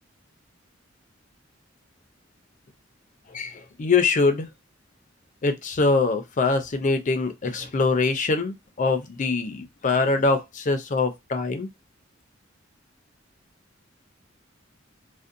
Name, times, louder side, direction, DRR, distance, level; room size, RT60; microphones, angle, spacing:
voice 1, 3.3-4.5 5.4-11.7, left 3 dB, 40° left, 0.5 m, -23 dB
2.6 x 2.1 x 2.4 m
head